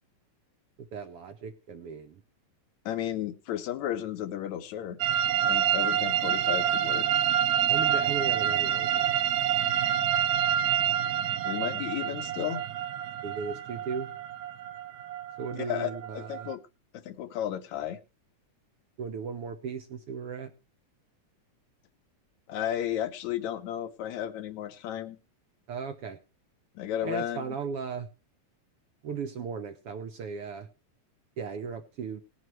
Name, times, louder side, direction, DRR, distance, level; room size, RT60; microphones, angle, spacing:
voice 1, 0.8-2.2 7.7-9.2 13.2-14.1 15.4-16.5 19.0-20.5 25.7-26.2 27.0-28.1 29.0-30.7 31.4-32.2, right 6 dB, 65° right, 8 dB, 1.6 m, -36 dB
voice 2, 2.9-5.0 5.4-7.1 11.4-12.6 15.6-16.6 16.9-18.0 22.5-25.2 26.8-27.5, left 11 dB, 75° left, 10 dB, 2.1 m, -33 dB
sound 1, 5.0-16.5, right 10 dB, 85° right, 2.4 m, -27 dB
19.5 x 9.4 x 3.1 m, 0.31 s
omnidirectional pair, 3.5 m